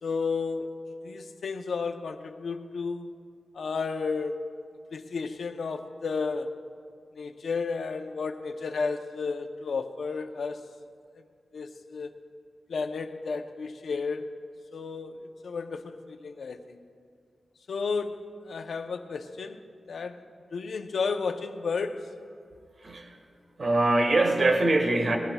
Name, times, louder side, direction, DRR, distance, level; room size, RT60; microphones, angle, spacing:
voice 1, 0.0-0.7 1.0-3.2 3.5-4.4 4.9-6.5 7.1-10.7 11.5-12.1 12.7-14.3 14.7-16.9 17.7-19.6 19.9-20.2 20.5-22.1, left 4 dB, 80° left, 7 dB, 0.7 m, -32 dB
voice 2, 22.8-23.2 23.6-25.2, right 2 dB, 50° right, 4 dB, 1.3 m, -23 dB
20.5 x 16.0 x 2.3 m, 2.3 s
wide cardioid pair, 105°, 0 cm